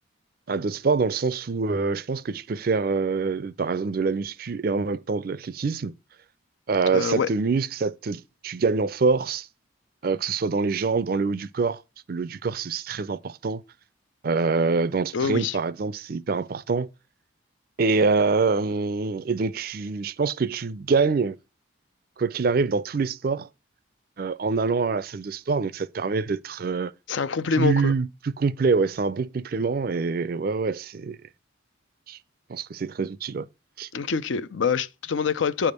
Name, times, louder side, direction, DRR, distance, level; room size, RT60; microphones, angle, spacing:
voice 1, 0.5-5.9 6.7-9.5 10.0-11.8 12.1-13.6 14.2-16.9 17.8-21.4 22.2-23.5 24.2-26.9 27.6-31.2 32.1-32.2 32.5-33.5 33.8-33.9, right 4 dB, 45° right, 0.4 m, -25 dB
voice 2, 6.9-7.3 15.1-15.6 27.1-27.9 33.9-35.7, left 5 dB, 70° left, 0.5 m, -25 dB
8.7 x 3.5 x 6.5 m
head